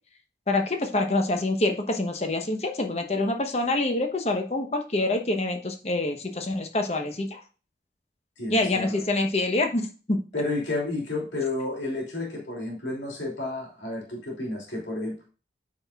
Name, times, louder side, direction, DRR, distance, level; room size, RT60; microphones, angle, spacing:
voice 1, 0.5-7.4 8.5-10.2, left 2 dB, 35° left, 5 dB, 1.0 m, -26 dB
voice 2, 8.4-9.0 10.3-15.3, left 2 dB, 85° left, -1 dB, 2.9 m, -31 dB
8.8 x 5.7 x 2.4 m, 0.36 s
head